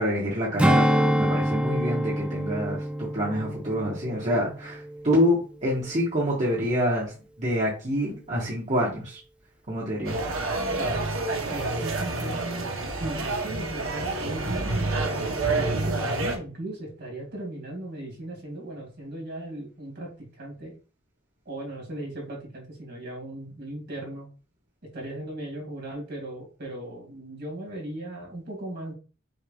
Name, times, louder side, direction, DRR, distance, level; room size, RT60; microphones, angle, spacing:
voice 1, 0.0-9.2 9.7-10.3, equal, 35° right, -6 dB, 1.3 m, -27 dB
Strum, 0.6-5.3 5.7-5.9, equal, 5° right, 0.4 m, -26 dB
sound 1, 10.0-16.4, right 2 dB, 80° right, 1.0 m, -28 dB
voice 2, 10.7-11.1 11.5-14.9 15.5-20.7 21.5-24.3 24.8-28.9, right 1 dB, 55° right, -1 dB, 2.3 m, -37 dB
6.3 x 3.5 x 2.4 m, 0.35 s
head